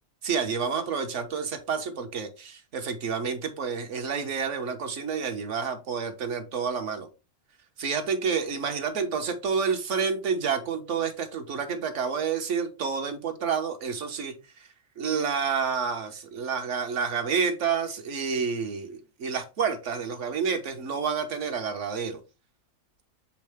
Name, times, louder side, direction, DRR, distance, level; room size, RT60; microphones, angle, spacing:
voice 1, 0.2-7.1 7.8-14.7 15.0-22.2, right 6 dB, 55° right, 7 dB, 1.2 m, -29 dB
7.5 x 3.7 x 3.4 m, 0.29 s
omnidirectional pair, 1.6 m